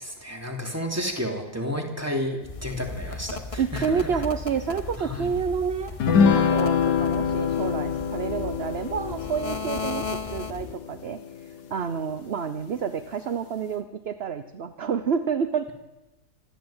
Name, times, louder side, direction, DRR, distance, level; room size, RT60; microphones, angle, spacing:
voice 1, 0.0-4.2 5.0-5.3, equal, 10° right, 2 dB, 3.1 m, -31 dB
sound 1, 2.4-10.8, left 4 dB, 30° left, 0.6 m, -36 dB
voice 2, 3.6-15.7, right 6 dB, 45° right, 10 dB, 0.9 m, -29 dB
sound 2, 6.0-11.7, left 6 dB, 70° left, 1.8 m, -25 dB
25.0 x 13.5 x 8.9 m, 1.1 s
omnidirectional pair, 1.9 m